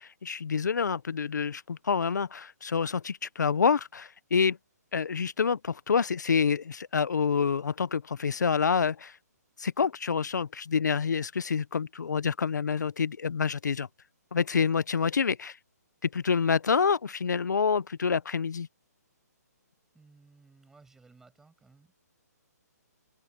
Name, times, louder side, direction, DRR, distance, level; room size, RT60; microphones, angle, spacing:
voice 1, 0.0-4.6 4.9-9.1 9.6-13.9 14.3-15.6 16.0-18.7, left 6 dB, 90° left, 0.9 m, -27 dB
voice 2, 19.9-21.9, right 3 dB, 5° right, 7.0 m, -58 dB
hypercardioid pair, 170°, 9 cm